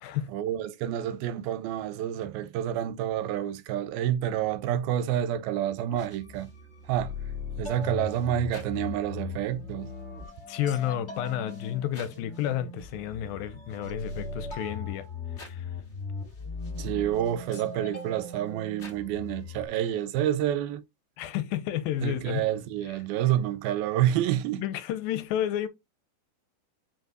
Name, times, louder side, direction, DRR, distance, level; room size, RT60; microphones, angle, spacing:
voice 1, 0.3-6.5 6.9-7.1 7.6-9.9 16.8-20.8 22.0-24.6, right 11 dB, 85° right, 2.5 m, -28 dB
sound 1, 5.9-19.6, left 3 dB, 30° left, 1.2 m, -39 dB
voice 2, 10.5-15.1 15.4-15.7 21.2-22.4 24.6-25.7, left 11 dB, 80° left, 2.3 m, -31 dB
5.4 x 5.2 x 3.8 m
omnidirectional pair, 4.3 m